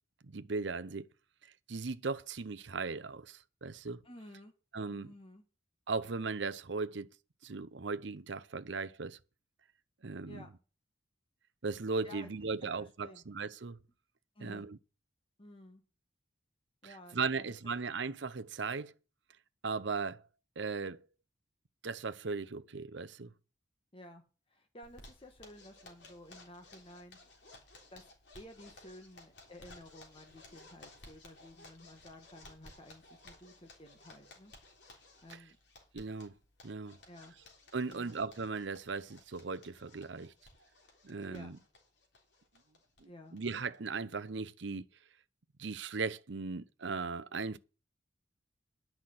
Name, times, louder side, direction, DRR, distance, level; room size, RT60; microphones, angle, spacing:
voice 1, 0.2-1.1 1.7-4.0 4.7-5.1 5.9-7.1 7.4-9.2 10.0-10.4 11.6-13.8 14.4-14.8 17.1-18.9 19.6-20.2 20.6-21.1 21.8-23.3 35.9-36.3 36.6-37.0 37.7-40.3 41.0-41.6 43.0-44.8 45.6-47.6, right 4 dB, 65° right, 0.7 m, -37 dB
voice 2, 4.0-4.5 4.9-5.4 10.3-10.5 12.0-12.3 12.6-13.2 14.3-14.7 15.4-15.8 16.8-17.5 23.9-27.2 27.9-28.1 28.3-34.5 35.2-35.6 37.0-37.4 37.8-38.1 41.3-41.6 43.0-43.4, left 1 dB, 30° left, 1.6 m, -53 dB
Zipper (clothing), 24.8-43.0 43.3-43.4 43.7-43.8 44.1-44.6, left 2 dB, 60° left, 3.6 m, -58 dB
10.5 x 5.9 x 7.8 m
head